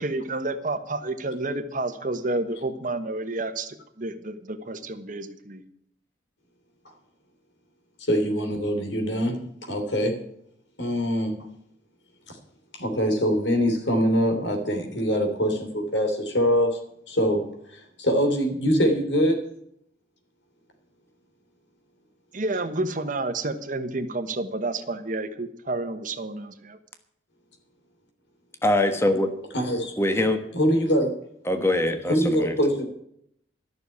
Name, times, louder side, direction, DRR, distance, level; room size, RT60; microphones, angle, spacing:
voice 1, 0.0-5.6 22.3-26.8, right 2 dB, 45° right, 9 dB, 1.2 m, -30 dB
voice 2, 8.0-10.2 10.8-11.4 12.7-16.8 17.1-19.5 29.5-29.9 30.5-31.1 32.1-32.8, equal, 85° left, 3 dB, 3.2 m, -23 dB
voice 3, 28.6-29.3 30.0-30.4 31.5-32.5, left 1 dB, 15° left, 6 dB, 1.3 m, -23 dB
13.0 x 6.8 x 9.6 m, 0.73 s
head